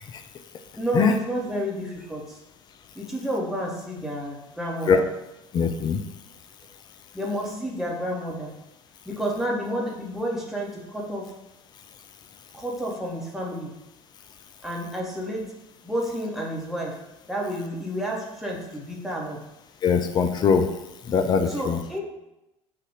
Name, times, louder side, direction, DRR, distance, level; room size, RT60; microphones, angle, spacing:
voice 1, 0.8-2.4 2.9-5.1 7.1-8.5 9.0-11.3 12.5-13.7 14.6-15.5 15.8-17.0 17.3-19.4 21.5-22.0, equal, ahead, -3 dB, 1.1 m, -30 dB
voice 2, 5.5-6.0 19.8-20.7 21.1-21.8, left 6 dB, 25° left, 8 dB, 0.4 m, -21 dB
3.9 x 2.6 x 4.7 m, 0.93 s
figure-of-eight pair, 65°, 16 cm